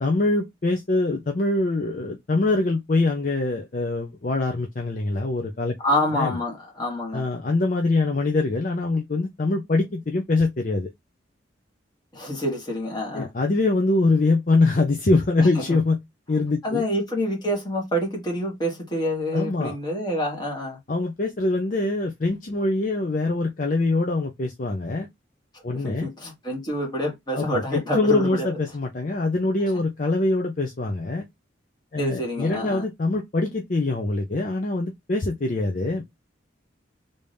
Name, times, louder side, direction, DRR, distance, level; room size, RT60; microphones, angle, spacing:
voice 1, 0.0-5.7 6.1-6.4 7.1-10.9 13.1-16.0 16.3-16.8 19.3-19.8 20.9-25.1 25.6-26.1 27.3-31.3 31.9-36.0, left 2 dB, 40° left, 0.5 m, -24 dB
voice 2, 5.8-7.2 12.1-13.3 15.4-15.8 16.6-20.8 25.7-28.5 32.0-32.8, equal, 20° left, 1.6 m, -27 dB
3.4 x 2.7 x 3.3 m
head